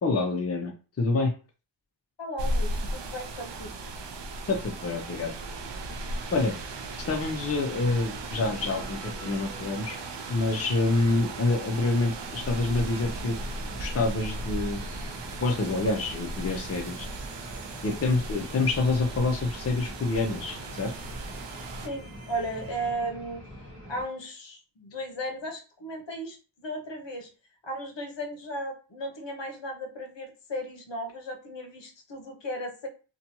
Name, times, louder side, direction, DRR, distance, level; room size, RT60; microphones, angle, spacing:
voice 1, 0.0-0.7 1.0-1.3 4.5-5.3 6.3-6.5 7.1-10.0 10.3-13.4 13.8-14.8 15.4-17.1 17.8-20.9, left 3 dB, 35° left, 2 dB, 0.5 m, -27 dB
voice 2, 2.2-3.7 21.8-23.4 23.9-27.3 27.6-32.9, right 1 dB, 65° left, 2 dB, 0.8 m, -35 dB
sound 1, 2.4-21.9, right 2 dB, 65° right, 0.5 m, -36 dB
sound 2, 4.9-22.9, right 2 dB, 85° right, 0.9 m, -48 dB
sound 3, 12.9-24.0, equal, 25° right, 1.2 m, -45 dB
2.6 x 2.2 x 2.9 m, 0.34 s
wide cardioid pair, 65°, 46 cm